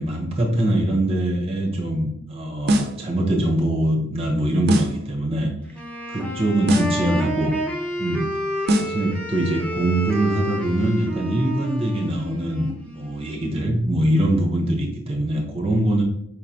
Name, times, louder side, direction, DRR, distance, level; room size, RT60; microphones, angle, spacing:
voice 1, 0.0-5.5 6.1-7.5 8.0-8.3 8.8-16.0, right 1 dB, 30° right, 1 dB, 0.8 m, -23 dB
sound 1, 2.7-3.1 4.7-5.1 6.7-7.1 8.7-9.1, right 1 dB, 50° right, 0.4 m, -21 dB
Wind instrument woodwind instrument, 5.7-13.6, equal, 5° left, 0.5 m, -29 dB
4.8 x 3.1 x 2.7 m, 0.78 s
head